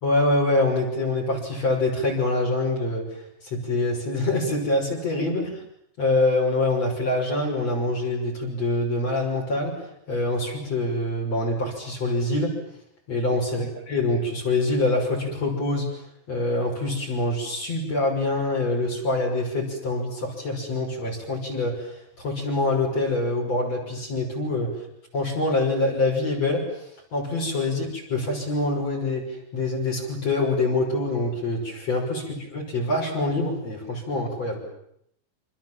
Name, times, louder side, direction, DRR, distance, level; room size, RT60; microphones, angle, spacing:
voice 1, 0.0-3.1 3.5-5.6 6.0-9.7 10.1-12.6 13.1-15.9 16.3-21.9 22.2-24.7 25.1-26.7 27.1-29.2 29.5-32.2 32.5-34.6, left 2 dB, 35° left, -2 dB, 6.9 m, -25 dB
27.5 x 27.5 x 7.7 m, 0.72 s
omnidirectional pair, 5.2 m